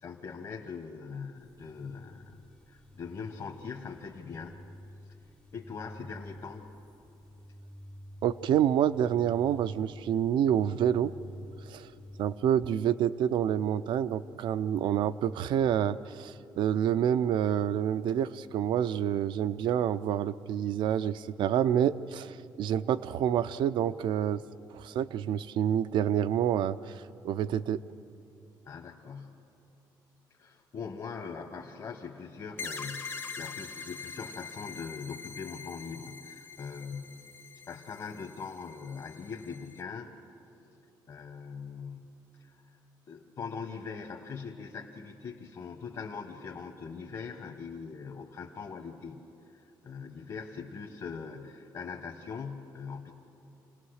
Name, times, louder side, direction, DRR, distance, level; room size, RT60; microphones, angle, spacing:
voice 1, 0.0-4.6 5.5-6.7 28.6-29.4 30.3-37.1 37.7-40.1 41.1-42.5 43.1-49.2 49.5-53.1, left 5 dB, 50° left, 1 dB, 1.4 m, -41 dB
sound 1, 1.4-12.4, left 1 dB, 10° left, 0.5 m, -49 dB
voice 2, 8.2-11.1 11.7-11.9 12.2-24.4 24.7-27.8, right 9 dB, 75° right, 14 dB, 0.5 m, -28 dB
sound 2, 32.6-39.8, left 5 dB, 30° left, 0.8 m, -44 dB
28.0 x 18.0 x 6.5 m, 2.8 s
cardioid pair, 105°, 8 cm